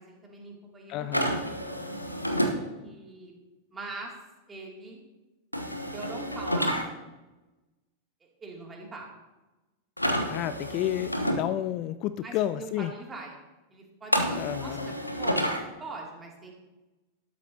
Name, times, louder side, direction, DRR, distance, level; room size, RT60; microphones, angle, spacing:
voice 1, 0.0-1.3 2.4-3.3 3.7-4.1 4.5-5.0 5.9-6.8 8.2-9.1 12.2-13.4 13.7-14.9 15.2-16.5, right 3 dB, 15° right, -1 dB, 2.6 m, -42 dB
voice 2, 0.9-1.4 10.3-12.9 14.4-14.9, left 13 dB, 40° left, 13 dB, 0.3 m, -31 dB
sound 1, 1.1-2.6 5.5-6.8 10.0-11.4 14.1-15.6, equal, 90° left, 1.0 m, -29 dB
12.0 x 11.0 x 2.8 m, 1.1 s
figure-of-eight pair, 90°, 0 cm